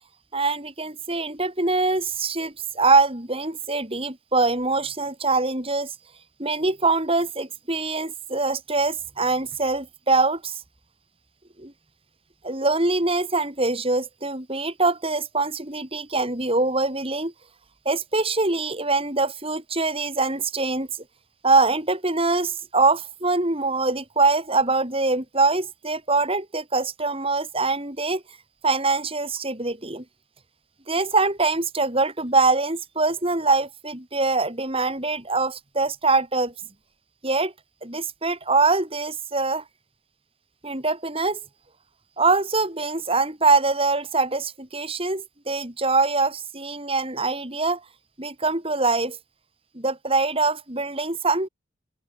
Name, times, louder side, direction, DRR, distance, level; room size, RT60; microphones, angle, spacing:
voice 1, 0.3-5.9 6.4-10.6 11.6-11.7 12.4-17.3 17.9-20.9 21.4-28.2 28.6-30.0 30.9-36.5 37.2-37.5 37.8-39.6 40.6-41.4 42.2-47.8 48.2-49.2 49.7-51.5, right 3 dB, 25° right, 3.8 m, -23 dB
head